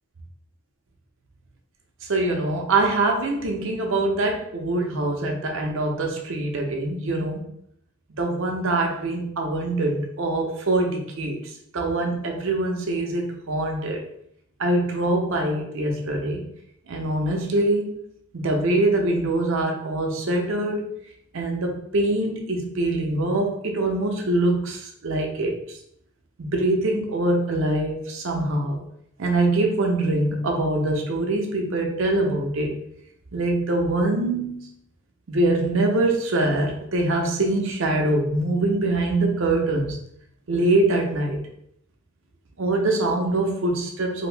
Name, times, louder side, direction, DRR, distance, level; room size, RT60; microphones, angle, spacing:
voice 1, 2.1-7.4 8.2-11.4 11.7-14.0 14.6-16.4 16.9-18.0 18.3-20.9 21.3-25.5 26.4-28.8 29.2-32.7 33.3-34.6 35.3-40.0 40.5-41.4 42.6-44.3, right 2 dB, 60° right, 2 dB, 0.6 m, -23 dB
2.8 x 2.5 x 3.3 m, 0.72 s
head